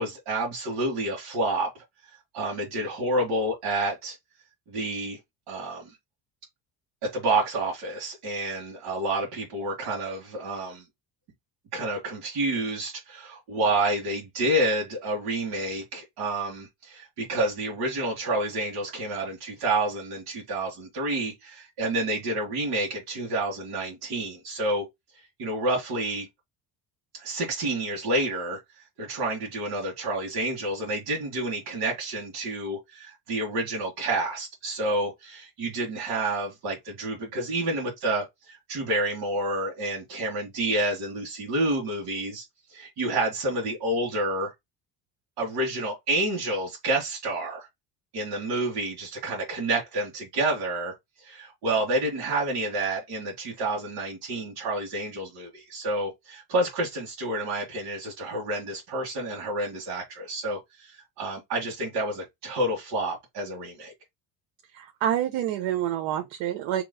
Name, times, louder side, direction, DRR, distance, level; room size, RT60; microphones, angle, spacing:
voice 1, 0.0-1.7 2.3-4.2 4.7-5.2 5.5-5.9 7.0-10.8 11.7-24.9 25.4-26.3 27.1-28.6 29.0-42.4 42.7-44.5 45.4-47.7 48.1-50.9 51.2-63.9, right 2 dB, 65° right, 1.7 m, -29 dB
voice 2, 64.8-66.8, right 10 dB, 85° right, 0.9 m, -27 dB
3.1 x 2.9 x 3.9 m
cardioid pair, 150°, 44 cm